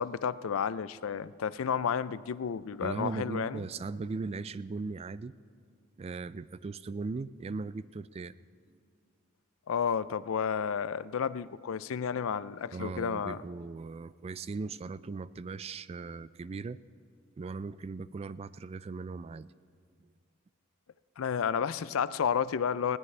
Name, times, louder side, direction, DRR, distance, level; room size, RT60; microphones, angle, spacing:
voice 1, 0.0-3.6 9.7-13.4 21.2-23.0, left 7 dB, 70° left, 16 dB, 0.4 m, -31 dB
voice 2, 2.8-5.4 6.0-8.3 12.7-16.8 17.4-19.5, right 4 dB, 30° right, 16 dB, 0.3 m, -38 dB
20.0 x 18.0 x 3.3 m, 2.2 s
head